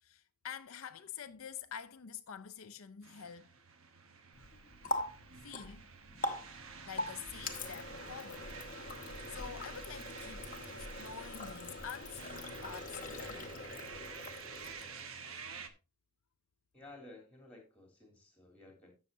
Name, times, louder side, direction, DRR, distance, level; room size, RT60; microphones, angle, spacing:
voice 1, 0.0-3.5 5.4-5.8 6.9-8.5 9.0-13.5 15.3-15.4, left 8 dB, 70° left, 0.6 m, -47 dB
sound 1, 3.0-15.7, right 5 dB, 70° right, 1.1 m, -50 dB
Water tap faucet, 4.3-15.1, left 2 dB, 40° left, 1.0 m, -43 dB
voice 2, 16.7-18.9, left 2 dB, 5° left, 3.1 m, -54 dB
15.0 x 6.4 x 2.7 m
head